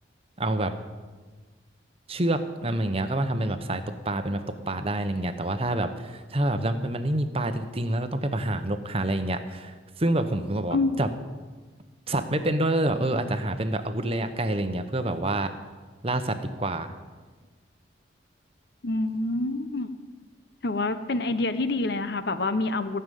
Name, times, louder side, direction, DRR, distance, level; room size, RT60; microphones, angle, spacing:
voice 1, 0.4-0.7 2.1-11.1 12.1-15.5 16.0-16.9, right 1 dB, 30° right, 9 dB, 0.9 m, -27 dB
voice 2, 18.8-19.9 20.6-23.0, left 2 dB, 55° left, 11 dB, 0.8 m, -27 dB
16.5 x 6.9 x 9.3 m, 1.4 s
head